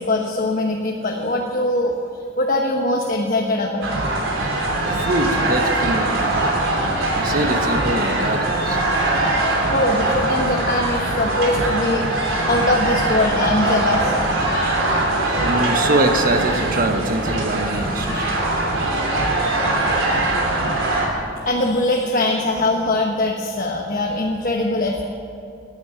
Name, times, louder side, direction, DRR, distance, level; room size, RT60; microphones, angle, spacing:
voice 1, 0.0-4.1 7.4-7.5 9.7-14.2 18.0-18.6 21.4-25.0, left 1 dB, 45° left, 0 dB, 1.2 m, -22 dB
sound 1, 3.8-21.1, right 2 dB, 85° right, 3.3 m, -21 dB
voice 2, 4.9-6.4 7.1-8.8 15.4-18.3, right 2 dB, 45° right, 6 dB, 1.3 m, -23 dB
15.5 x 9.9 x 8.9 m, 2.6 s
head